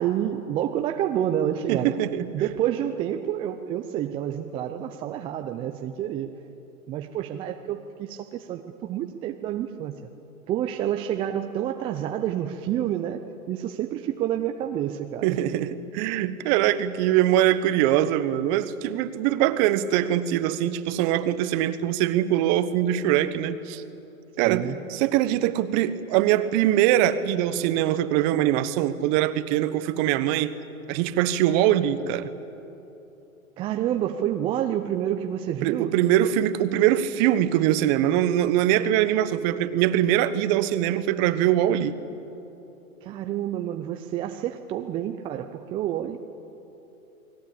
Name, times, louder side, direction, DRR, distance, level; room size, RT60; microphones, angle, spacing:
voice 1, 0.0-1.9 2.3-6.3 6.9-10.0 10.5-13.2 13.5-15.4 24.4-24.8 33.6-35.9 43.0-46.2, right 11 dB, 15° right, 5 dB, 0.5 m, -28 dB
voice 2, 1.7-2.3 15.2-23.8 24.4-30.5 30.9-32.3 35.6-41.9, right 12 dB, 30° right, 13 dB, 1.2 m, -22 dB
29.0 x 20.5 x 8.6 m, 3.0 s
hypercardioid pair, 125°, 43 cm